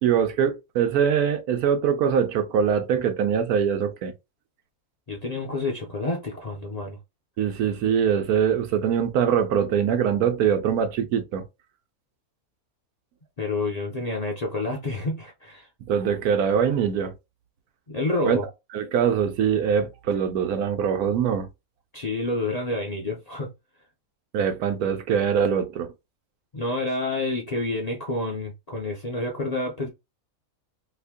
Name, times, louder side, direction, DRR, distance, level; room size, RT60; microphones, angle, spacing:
voice 1, 0.0-4.1 7.4-11.4 15.9-17.1 18.2-18.4 18.7-21.5 24.3-25.9, right 7 dB, 90° right, 1.2 m, -23 dB
voice 2, 5.1-7.0 13.4-15.7 17.9-18.4 21.9-23.5 26.5-29.9, left 2 dB, 45° left, 0.5 m, -28 dB
3.0 x 2.6 x 3.5 m
omnidirectional pair, 1.5 m